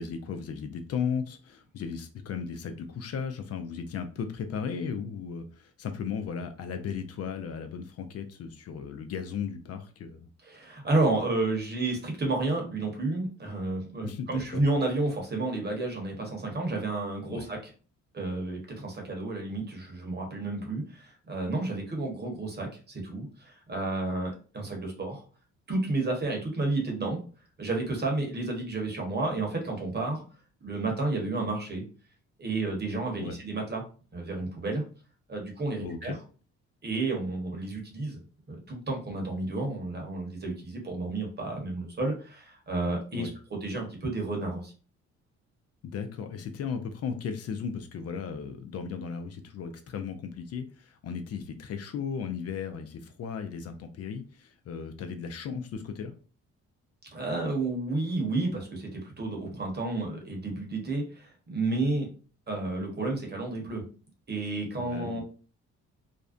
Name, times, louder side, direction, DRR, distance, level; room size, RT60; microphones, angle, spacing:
voice 1, 0.0-10.3 14.0-14.6 17.3-17.5 33.2-33.4 35.8-36.2 43.1-43.3 45.8-56.1 64.8-65.2, left 6 dB, 55° left, 7 dB, 0.4 m, -36 dB
voice 2, 10.4-17.7 18.1-25.2 25.7-27.2 27.6-30.2 30.6-31.8 32.4-33.8 34.1-34.8 35.3-36.2 36.8-38.2 38.5-43.3 43.6-44.7 57.1-62.1 62.5-63.8 64.3-65.2, right 2 dB, 35° right, 1 dB, 0.9 m, -31 dB
2.5 x 2.1 x 2.4 m, 0.38 s
cardioid pair, 90°, 30 cm